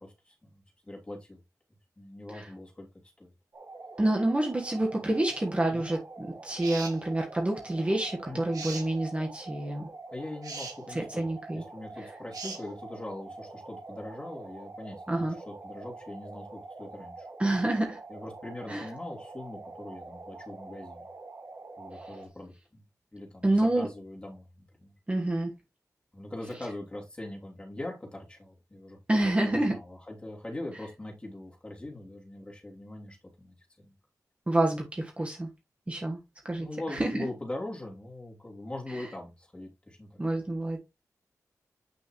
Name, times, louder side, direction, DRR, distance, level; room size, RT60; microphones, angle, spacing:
voice 1, 0.0-1.4 2.0-2.9 3.2-3.3 4.8-5.0 5.7-5.9 8.3-8.5 10.1-17.3 18.1-21.1 21.8-22.8 23.1-24.9 26.1-33.9 36.5-40.3, left 1 dB, 15° left, 2.9 m, -42 dB
sound 1, 3.5-22.3, right 3 dB, 45° right, 1.6 m, -46 dB
voice 2, 4.0-9.9 10.9-11.6 15.1-15.4 17.4-18.0 18.7-18.9 23.4-23.9 25.1-25.5 29.1-29.8 34.5-35.5 35.9-36.2 36.5-37.2 38.9-39.1 40.2-40.8, right 1 dB, 20° right, 1.3 m, -28 dB
sound 2, 6.6-7.0 8.5-8.9 10.4-10.8 12.3-12.6, right 4 dB, 85° right, 2.1 m, -39 dB
8.3 x 6.3 x 3.1 m
wide cardioid pair, 150°, 6 cm